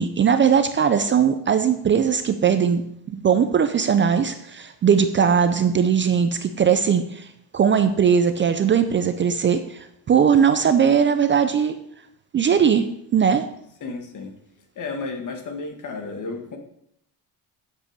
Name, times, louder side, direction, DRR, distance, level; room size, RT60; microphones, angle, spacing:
voice 1, 0.0-11.7 12.3-12.9 13.1-13.5, right 7 dB, 30° right, 9 dB, 0.5 m, -19 dB
voice 2, 13.8-14.3 14.8-16.6, left 3 dB, 45° left, 5 dB, 1.8 m, -32 dB
10.0 x 7.6 x 6.6 m, 0.74 s
cardioid pair, 175°, 41 cm